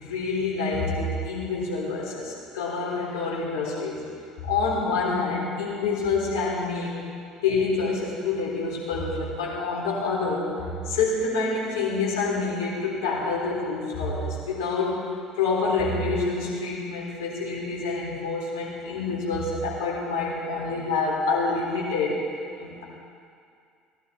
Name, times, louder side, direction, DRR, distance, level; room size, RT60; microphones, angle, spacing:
voice 1, 0.0-4.1 4.4-7.0 7.4-10.5 10.9-15.0 15.3-22.2 22.6-22.8, left 4 dB, 70° left, -4 dB, 3.4 m, -27 dB
17.0 x 11.0 x 4.2 m, 2.3 s
figure-of-eight pair, 60°, 2 cm